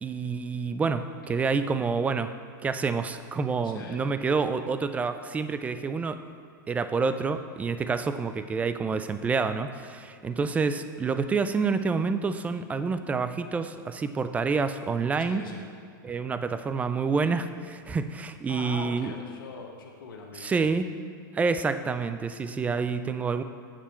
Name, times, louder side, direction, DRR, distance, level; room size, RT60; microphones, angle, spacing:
voice 1, 0.0-2.3 2.6-6.2 6.7-15.4 16.0-19.1 20.4-20.9 21.3-23.4, right 4 dB, 15° right, 10 dB, 0.3 m, -28 dB
voice 2, 1.3-1.7 3.6-4.0 15.2-15.6 18.5-20.6, left 4 dB, 80° left, 2 dB, 1.0 m, -42 dB
7.5 x 4.3 x 5.6 m, 2.4 s
hypercardioid pair, 120°, 11 cm